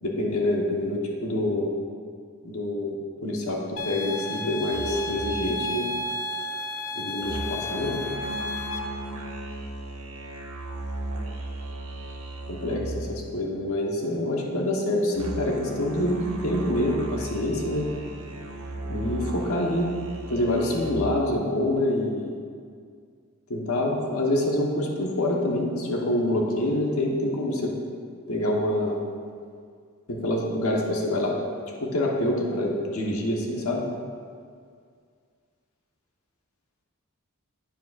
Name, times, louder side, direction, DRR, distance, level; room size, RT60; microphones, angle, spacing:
voice 1, 0.0-1.7 2.4-3.0 3.2-5.9 6.9-8.0 12.5-17.9 18.8-22.3 23.5-27.7 28.3-29.0 30.1-31.4 31.8-33.8, left 1 dB, 85° left, -1 dB, 1.2 m, -26 dB
sound 1, 3.8-8.8, left 1 dB, 65° left, 0.6 m, -32 dB
sound 2, 4.7-13.1 15.1-20.9, right 2 dB, 90° right, 1.1 m, -36 dB
9.8 x 9.0 x 2.5 m, 2.1 s
head